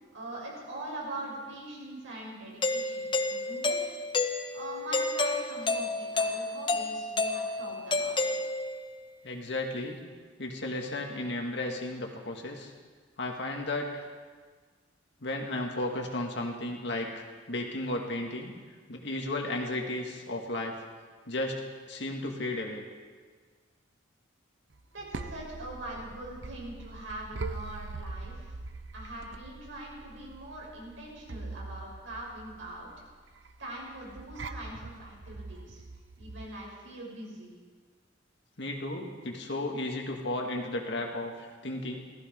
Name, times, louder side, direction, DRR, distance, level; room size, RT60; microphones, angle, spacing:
voice 1, 0.1-3.8 4.5-8.2 24.9-28.6 28.9-32.9 33.6-35.8 36.2-37.5, right 1 dB, 90° right, -3 dB, 6.3 m, -42 dB
Doorbell, 2.6-8.9, left 3 dB, 25° left, 0.8 m, -30 dB
voice 2, 9.2-10.0 10.4-12.7 13.2-14.1 15.2-18.5 18.9-20.7 21.3-21.6 21.9-22.8 38.6-42.0, left 2 dB, 60° left, 1 dB, 2.2 m, -34 dB
sound 1, 24.7-36.6, right 3 dB, 75° right, 0.7 m, -43 dB
17.0 x 15.0 x 5.4 m, 1.5 s
head